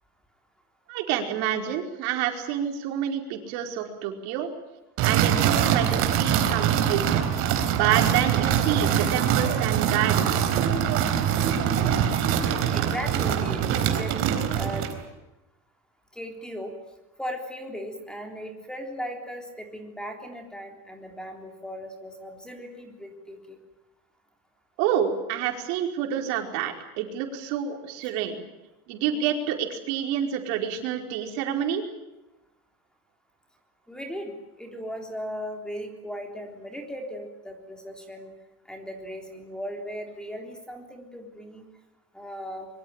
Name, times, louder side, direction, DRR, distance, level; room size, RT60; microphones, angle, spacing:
voice 1, 0.9-4.5 5.0-7.3 7.7-10.5 24.8-28.4 28.9-31.8, right 9 dB, 65° right, 4 dB, 5.0 m, -28 dB
sound 1, 5.0-15.0, right 9 dB, 45° right, 3.9 m, -23 dB
voice 2, 12.7-14.1 14.5-14.9 16.1-16.7 17.2-23.6 33.9-38.3 38.7-41.7 42.1-42.7, equal, ahead, 3 dB, 3.6 m, -37 dB
25.0 x 23.5 x 9.0 m, 0.95 s
cardioid pair, 180°, 32 cm